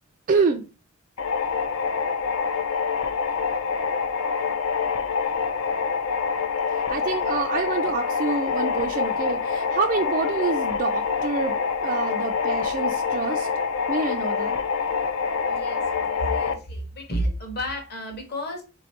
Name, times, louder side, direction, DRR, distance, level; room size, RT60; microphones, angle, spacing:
voice 1, 0.3-0.6 6.7-11.6 11.8-13.5 13.9-14.6, right 4 dB, 40° right, 3 dB, 0.3 m, -27 dB
sound 1, 1.2-16.5, left 5 dB, 65° left, 0.5 m, -26 dB
voice 2, 15.4-18.6, equal, 45° left, 2 dB, 1.3 m, -31 dB
3.4 x 3.1 x 4.2 m, 0.32 s
head